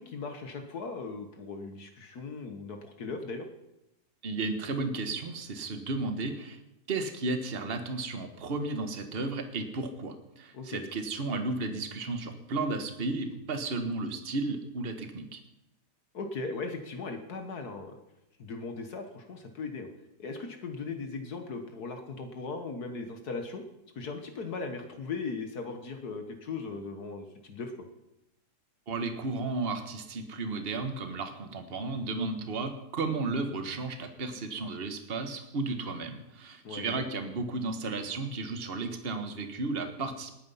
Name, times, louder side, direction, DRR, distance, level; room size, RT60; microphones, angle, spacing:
voice 1, 0.0-3.5 10.5-10.8 16.1-18.0 18.4-19.9 20.2-23.6 23.9-27.7 36.6-37.0, left 4 dB, 70° left, 5 dB, 1.8 m, -38 dB
voice 2, 4.2-6.6 6.9-15.4 28.9-40.3, right 3 dB, 40° right, 7 dB, 1.5 m, -33 dB
19.5 x 9.3 x 5.6 m, 0.88 s
omnidirectional pair, 1.7 m